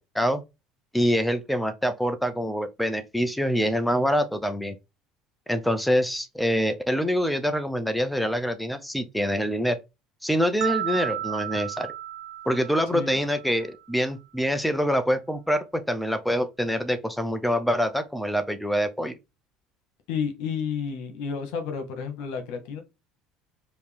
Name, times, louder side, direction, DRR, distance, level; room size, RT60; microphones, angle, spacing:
voice 1, 0.9-4.8 5.5-9.8 10.2-11.9 12.5-19.1, equal, ahead, 0.5 m, -25 dB
sound 1, 10.6-13.7, right 12 dB, 60° right, 0.4 m, -33 dB
voice 2, 20.1-22.8, left 6 dB, 70° left, 1.5 m, -31 dB
4.8 x 2.8 x 3.5 m
cardioid pair, 175°, 0 cm